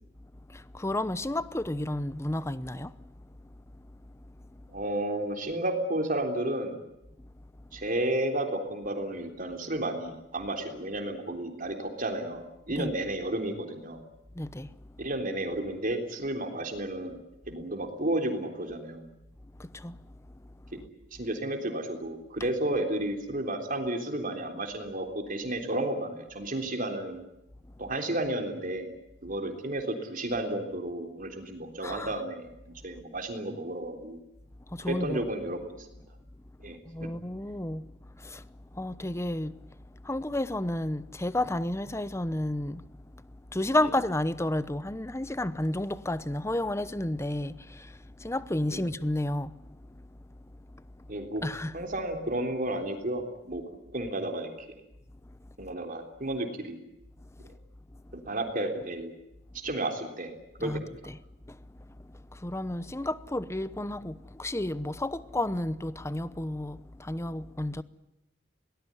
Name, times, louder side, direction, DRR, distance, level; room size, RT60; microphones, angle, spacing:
voice 1, 0.5-2.9 3.7-3.8 4.5-4.6 7.2-7.3 12.8-12.9 14.3-15.0 19.6-20.5 31.8-32.1 34.7-35.2 36.9-39.8 40.0-50.0 50.5-50.8 51.4-51.8 55.3-55.4 57.4-57.5 57.9-58.0 60.6-61.2 61.5-67.8, left 1 dB, 15° left, 0.9 m, -32 dB
voice 2, 4.7-6.8 7.7-14.0 15.0-17.2 17.5-19.0 20.7-20.8 21.1-27.2 27.8-28.9 29.2-34.2 34.9-35.9 36.6-37.1 48.7-48.8 51.1-51.4 51.7-53.6 53.9-54.7 55.6-56.8 58.3-59.1 59.6-60.3 60.6-60.7, right 1 dB, 50° right, 3.5 m, -32 dB
22.5 x 19.0 x 9.8 m
head